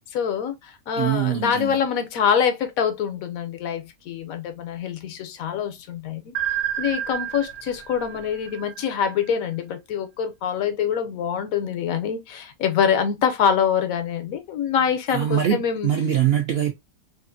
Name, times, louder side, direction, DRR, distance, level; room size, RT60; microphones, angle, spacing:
voice 1, 0.1-6.3 6.8-15.9, left 7 dB, 75° left, 1.0 m, -25 dB
voice 2, 1.0-1.8 15.1-16.7, right 10 dB, 70° right, 0.6 m, -23 dB
sound 1, 6.3-9.3, right 11 dB, 85° right, 1.1 m, -30 dB
2.8 x 2.4 x 2.5 m
omnidirectional pair, 1.5 m